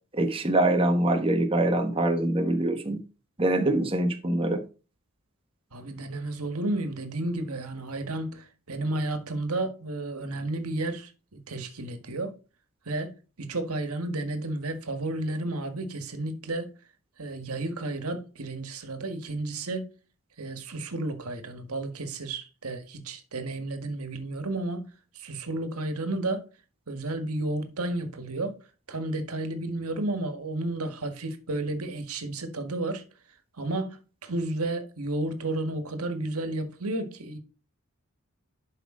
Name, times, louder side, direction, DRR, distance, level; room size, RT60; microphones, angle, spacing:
voice 1, 0.1-3.0 3.4-4.6, right 1 dB, 25° right, 1.2 m, -24 dB
voice 2, 5.7-12.3 12.9-13.1 13.4-16.7 17.2-19.9 20.4-24.9 25.1-26.4 26.9-28.5 28.9-33.0 33.6-34.0 34.2-37.4, right 2 dB, 90° right, 1.7 m, -32 dB
11.5 x 5.4 x 3.8 m
head